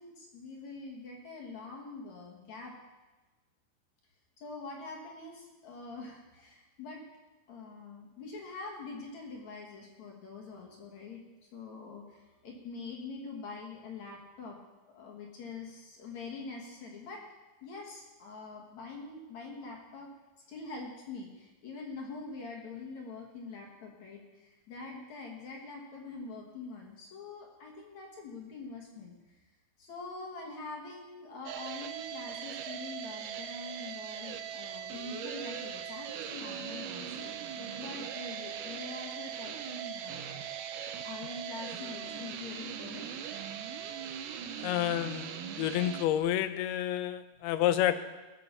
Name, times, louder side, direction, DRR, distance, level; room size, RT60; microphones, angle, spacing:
voice 1, 0.0-2.7 4.4-7.0 7.5-11.2 11.5-14.6 14.9-17.2 17.6-20.1 20.5-29.4 29.8-40.4 41.0-43.1, left 3 dB, 55° left, 0 dB, 2.6 m, -44 dB
sound 1, 31.5-46.1, right 8 dB, 75° right, 2.1 m, -40 dB
voice 2, 44.6-45.3 45.6-48.0, left 12 dB, 85° left, 11 dB, 2.7 m, -29 dB
18.5 x 6.8 x 6.8 m, 1.1 s
omnidirectional pair, 4.5 m